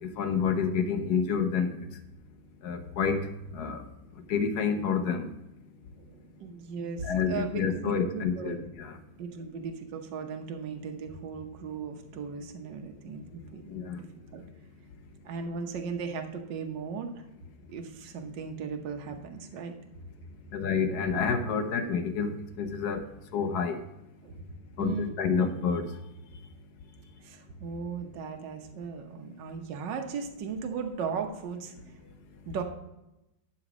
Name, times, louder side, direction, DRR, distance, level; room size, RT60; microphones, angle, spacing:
voice 1, 0.0-1.8 2.6-3.9 4.3-5.3 7.0-9.0 13.7-14.0 20.5-23.0 23.3-23.8 24.8-25.9, left 6 dB, 60° left, 8 dB, 1.2 m, -29 dB
voice 2, 6.0-8.6 9.2-13.6 14.3-14.4 15.2-17.2 17.7-19.7 24.2-24.4 24.8-25.4 27.2-31.7 32.4-32.6, right 5 dB, 65° right, 4 dB, 1.6 m, -37 dB
11.5 x 4.0 x 6.0 m, 0.92 s
omnidirectional pair, 2.2 m